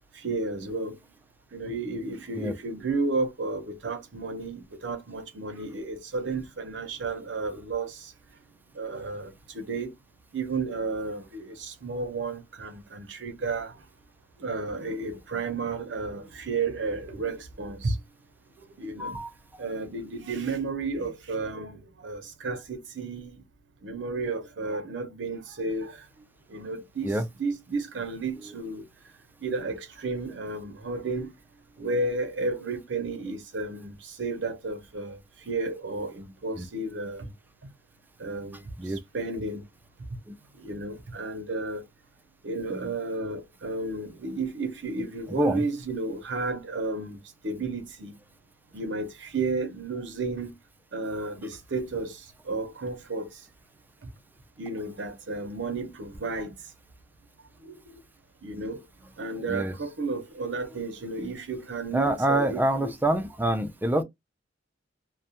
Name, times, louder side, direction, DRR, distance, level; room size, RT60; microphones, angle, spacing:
voice 1, 0.2-1.0 1.5-8.1 8.7-9.9 10.3-13.7 14.4-18.0 18.8-19.2 19.6-23.4 23.8-26.0 26.5-28.8 29.4-31.3 31.8-35.2 35.5-37.3 38.2-38.6 39.1-39.6 40.6-41.9 42.4-47.2 47.4-48.2 48.7-50.6 50.9-53.3 54.6-56.6 57.6-58.0 58.4-62.9, right 3 dB, 70° right, 0.6 m, -32 dB
voice 2, 19.0-19.3 27.0-27.2 36.6-36.7 38.8-39.0 40.3-40.4 45.4-45.6 59.5-59.7 61.9-64.0, right 1 dB, 10° right, 0.3 m, -26 dB
2.3 x 2.1 x 2.7 m
head